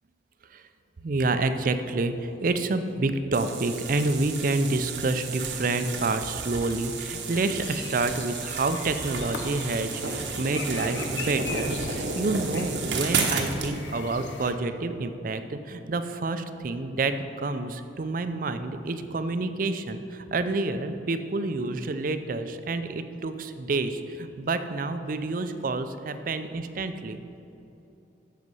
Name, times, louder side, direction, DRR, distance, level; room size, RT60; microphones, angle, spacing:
voice 1, 1.0-27.2, right 3 dB, 45° right, 9 dB, 0.5 m, -28 dB
sound 1, 3.3-13.7, right 4 dB, 75° right, 0.9 m, -32 dB
sound 2, 7.3-14.5, left 4 dB, 85° left, 0.8 m, -40 dB
8.0 x 6.7 x 5.4 m, 2.9 s
head